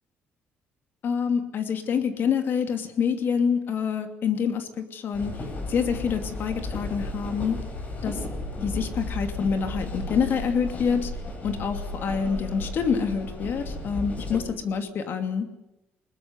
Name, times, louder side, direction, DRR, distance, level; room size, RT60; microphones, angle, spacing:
voice 1, 1.0-5.3 5.7-7.6 8.0-8.2 8.6-11.1 11.4-15.5, left 6 dB, 50° left, 7 dB, 2.7 m, -26 dB
sound 1, 5.1-14.4, left 2 dB, 35° left, 7.0 m, -34 dB
21.5 x 20.0 x 9.7 m, 0.92 s
cardioid pair, 130°, 4 cm